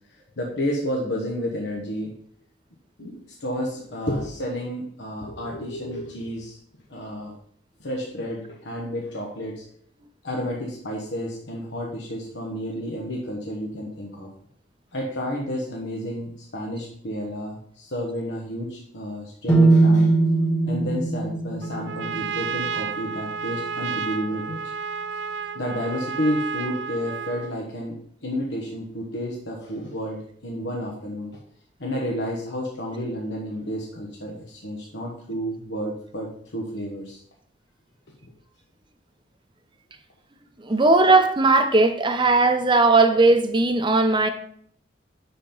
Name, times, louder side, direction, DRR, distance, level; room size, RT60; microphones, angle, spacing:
voice 1, 0.1-2.1 3.0-6.6 6.9-7.3 7.8-9.7 10.2-14.3 14.9-20.1 20.7-24.6 25.5-31.4 31.8-37.2 38.2-38.3 42.8-42.9, equal, 70° left, 1.3 m, -31 dB
sound 1, 19.5-23.4, right 3 dB, 15° left, 1.4 m, -21 dB
Trumpet, 21.6-27.6, right 6 dB, 65° right, 0.4 m, -31 dB
voice 2, 40.6-44.3, right 3 dB, 25° right, 0.7 m, -18 dB
11.0 x 4.4 x 3.9 m
head